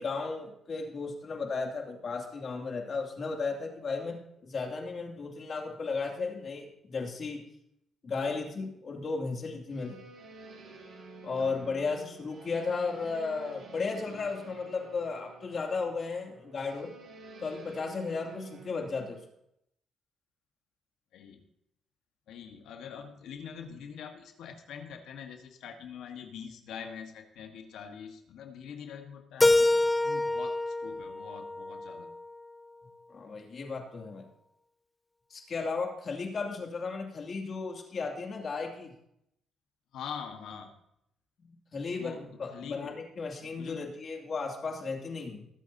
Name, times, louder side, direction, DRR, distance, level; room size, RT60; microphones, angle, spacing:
voice 1, 0.0-7.4 8.0-10.0 11.2-16.9 17.4-19.2 33.1-34.3 35.3-38.9 41.4-45.5, left 4 dB, 45° left, 1 dB, 2.6 m, -35 dB
sound 1, 9.7-19.2, right 3 dB, 65° right, 3.0 m, -50 dB
voice 2, 21.1-21.5 22.3-32.1 39.9-40.8 42.0-43.0 43.4-43.9, left 7 dB, 80° left, 5 dB, 1.4 m, -44 dB
Keyboard (musical), 29.4-32.3, left 2 dB, 15° left, 0.4 m, -26 dB
21.0 x 8.3 x 2.8 m, 0.77 s
cardioid pair, 90°, 0 cm